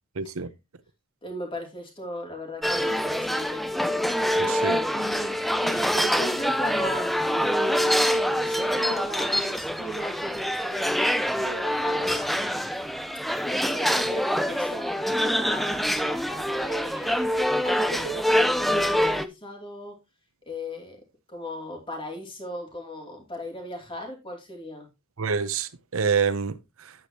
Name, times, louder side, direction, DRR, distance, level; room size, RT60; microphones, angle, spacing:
voice 1, 0.2-0.5 4.4-4.8 25.2-26.9, right 5 dB, 70° right, 0.8 m, -27 dB
voice 2, 1.2-3.7 4.7-12.3 13.4-20.0 20.5-21.0 21.3-24.9, equal, 25° left, 2.7 m, -37 dB
sound 1, 2.6-19.2, equal, ahead, 0.4 m, -25 dB
9.9 x 8.4 x 2.9 m
head